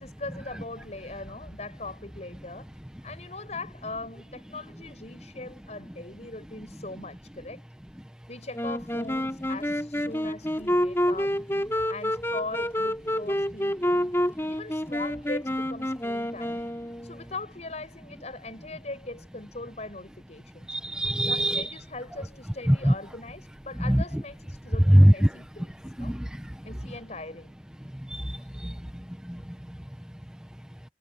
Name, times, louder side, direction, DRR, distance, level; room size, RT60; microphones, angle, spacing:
voice 1, 0.0-2.7 3.0-7.6 8.3-11.3 11.9-14.1 14.5-16.6 17.0-20.7 21.3-26.2 26.6-27.5 28.4-28.5, left 2 dB, 40° left, 6.4 m, -40 dB
Wind instrument woodwind instrument, 8.5-17.3, equal, 15° left, 4.0 m, -28 dB
voice 2, 20.7-21.7 22.7-22.9 23.8-24.2 24.9-25.4 26.0-26.7 27.9-29.8, equal, 5° right, 0.9 m, -23 dB
head